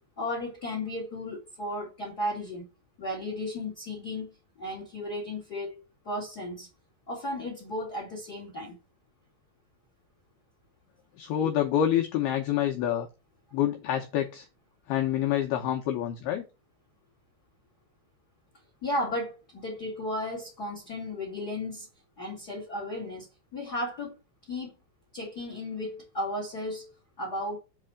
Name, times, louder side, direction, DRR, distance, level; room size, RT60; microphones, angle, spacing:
voice 1, 0.0-2.6 3.0-4.3 4.6-5.8 6.0-6.7 7.1-8.7 18.8-21.9 22.2-24.2 24.5-24.7 25.1-26.9 27.2-27.6, left 1 dB, 40° left, 1.4 m, -34 dB
voice 2, 11.2-13.1 13.5-14.5 14.9-16.5, left 10 dB, 90° left, 2.2 m, -27 dB
7.8 x 3.3 x 6.3 m
omnidirectional pair, 5.6 m